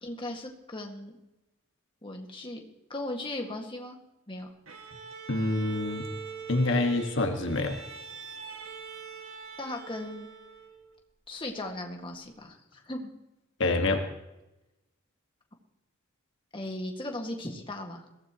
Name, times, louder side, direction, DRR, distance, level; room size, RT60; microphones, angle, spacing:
voice 1, 0.0-1.2 2.0-2.6 2.9-4.0 4.3-4.5 9.6-10.3 11.3-13.1 16.5-18.0, left 1 dB, 25° left, 2 dB, 1.9 m, -37 dB
Bowed string instrument, 4.7-11.0, right 6 dB, 80° right, 2.0 m, -43 dB
voice 2, 5.3-6.1 6.5-7.8 13.6-14.0, left 2 dB, 65° left, 4 dB, 1.7 m, -26 dB
22.0 x 16.0 x 3.1 m, 0.95 s
head